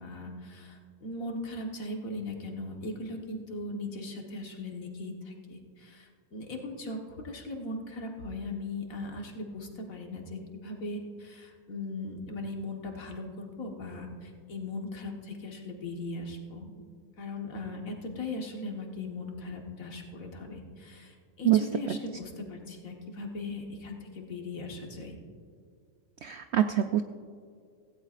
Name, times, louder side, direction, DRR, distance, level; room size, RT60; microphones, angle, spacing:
voice 1, 0.0-16.7 17.2-21.1 21.4-25.2, left 2 dB, 60° left, 2 dB, 1.8 m, -39 dB
voice 2, 21.4-22.0 26.2-27.0, right 11 dB, 70° right, 8 dB, 0.6 m, -25 dB
17.0 x 16.5 x 2.5 m, 2.1 s
omnidirectional pair, 1.6 m